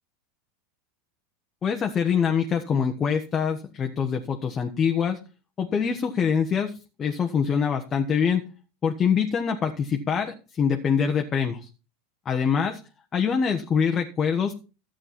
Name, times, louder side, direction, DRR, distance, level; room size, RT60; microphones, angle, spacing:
voice 1, 1.6-5.2 5.6-8.4 8.8-11.7 12.2-12.8 13.1-14.6, left 7 dB, 30° left, 4 dB, 1.2 m, -24 dB
12.5 x 7.6 x 4.3 m, 0.33 s
hypercardioid pair, 100°, 0 cm